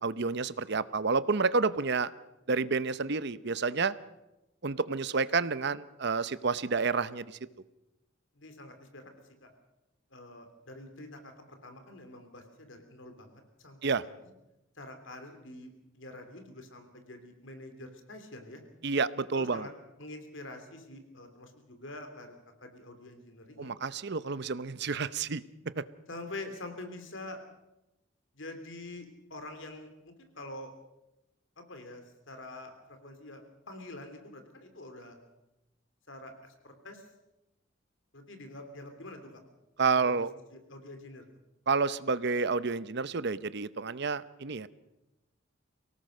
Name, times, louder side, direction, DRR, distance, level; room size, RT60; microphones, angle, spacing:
voice 1, 0.0-2.1 2.5-3.9 4.6-7.4 13.8-14.0 18.8-19.7 23.6-25.4 25.8-25.9 39.8-40.3 41.7-44.7, right 4 dB, 60° right, 15 dB, 0.8 m, -29 dB
voice 2, 8.3-9.1 9.4-9.5 10.1-14.1 14.7-18.6 19.3-19.7 20.0-23.7 24.9-25.0 26.1-27.4 28.3-30.7 31.6-35.2 36.1-37.1 38.1-39.4 40.0-40.2 40.5-41.3, left 2 dB, 70° left, 6 dB, 3.3 m, -46 dB
24.0 x 18.0 x 6.5 m, 0.94 s
head